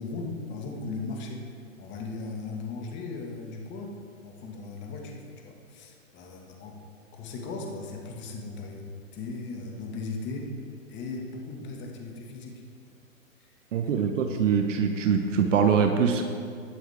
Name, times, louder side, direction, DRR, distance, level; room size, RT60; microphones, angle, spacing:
voice 1, 0.0-1.4 1.8-6.8 7.1-10.5 10.9-12.6 13.4-13.5, left 3 dB, 25° left, 1 dB, 1.8 m, -37 dB
voice 2, 13.7-16.2, right 6 dB, 65° right, 5 dB, 1.0 m, -23 dB
19.0 x 7.9 x 3.6 m, 2.3 s
hypercardioid pair, 120°, 41 cm